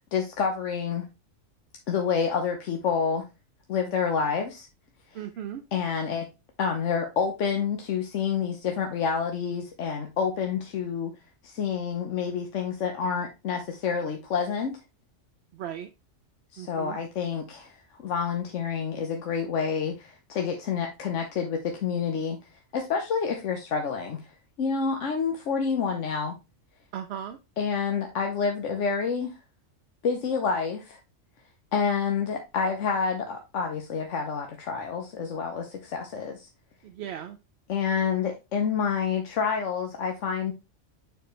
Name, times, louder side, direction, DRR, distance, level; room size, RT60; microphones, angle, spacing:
voice 1, 0.1-1.1 1.9-3.3 3.7-4.7 5.7-6.3 6.6-11.1 11.4-14.8 16.5-17.8 18.0-22.4 22.7-24.3 24.6-26.4 27.6-29.4 30.0-31.0 31.7-36.5 37.7-40.5, left 6 dB, 70° left, 4 dB, 1.1 m, -28 dB
voice 2, 5.1-5.6 15.5-15.9 16.6-17.0 26.9-27.4 36.8-37.4, right 10 dB, 65° right, 7 dB, 0.8 m, -37 dB
6.9 x 4.6 x 3.1 m, 0.26 s
omnidirectional pair, 1.3 m